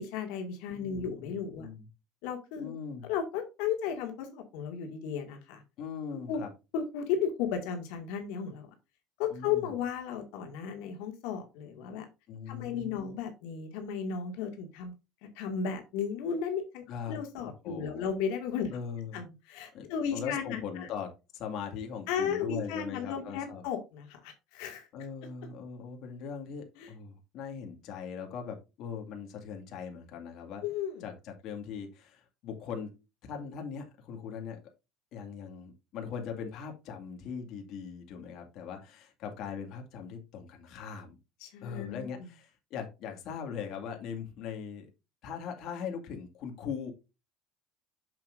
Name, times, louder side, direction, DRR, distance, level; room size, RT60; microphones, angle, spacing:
voice 1, 0.0-1.7 2.2-2.7 3.0-5.6 6.3-6.4 6.7-8.7 9.2-12.1 12.5-14.9 15.4-18.7 19.1-20.9 22.1-24.9 26.8-26.9 30.6-31.0 41.4-42.0, left 7 dB, 75° left, 4 dB, 2.0 m, -34 dB
voice 2, 0.8-1.9 2.6-3.1 5.8-6.5 9.3-9.7 12.3-13.1 16.9-17.2 17.6-18.1 18.7-19.2 19.7-23.6 24.9-30.6 31.0-32.9 33.3-34.6 35.1-41.2 41.6-44.9 45.2-46.9, left 7 dB, 50° left, 3 dB, 2.0 m, -40 dB
7.3 x 7.0 x 2.5 m, 0.26 s
cardioid pair, 150°, 0 cm